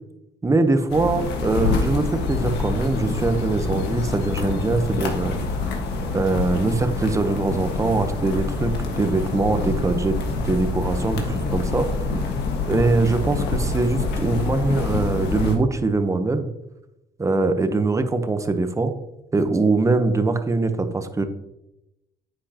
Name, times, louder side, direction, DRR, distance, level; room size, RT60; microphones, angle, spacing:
voice 1, 0.4-5.4 6.1-11.9 12.7-16.5 17.2-19.0 19.3-21.2, right 3 dB, 20° right, 8 dB, 0.9 m, -22 dB
sound 1, 0.9-15.6, left 4 dB, 80° left, 1.6 m, -26 dB
10.0 x 8.3 x 2.9 m, 0.92 s
cardioid pair, 110°, 17 cm